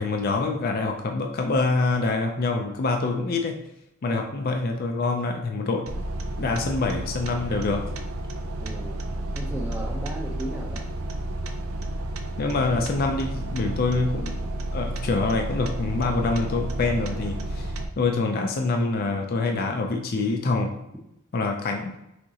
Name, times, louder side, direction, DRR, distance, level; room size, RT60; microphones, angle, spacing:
voice 1, 0.0-3.5 4.0-5.9 6.4-7.8 12.4-14.4 14.7-20.7 21.3-21.9, left 3 dB, 45° left, 3 dB, 0.4 m, -25 dB
sound 1, 5.9-17.9, right 1 dB, 90° right, 0.5 m, -31 dB
voice 2, 8.6-9.0 9.3-10.8, right 1 dB, 10° right, -1 dB, 0.5 m, -36 dB
6.2 x 2.9 x 2.8 m, 0.87 s
head